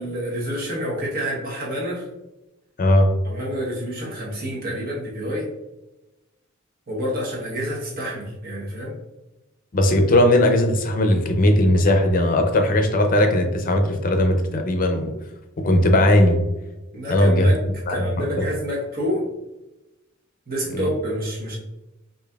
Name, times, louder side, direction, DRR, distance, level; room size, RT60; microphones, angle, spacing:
voice 1, 0.0-2.1 3.2-5.5 6.9-9.0 16.9-17.6 17.9-19.2 20.5-21.6, equal, 50° right, -4 dB, 1.1 m, -28 dB
voice 2, 2.8-3.1 9.7-15.1 15.6-16.4 17.1-17.5 17.9-18.0 18.4-18.5 20.7-20.9, left 1 dB, 45° left, 5 dB, 0.5 m, -18 dB
5.0 x 2.6 x 2.3 m, 1.0 s
head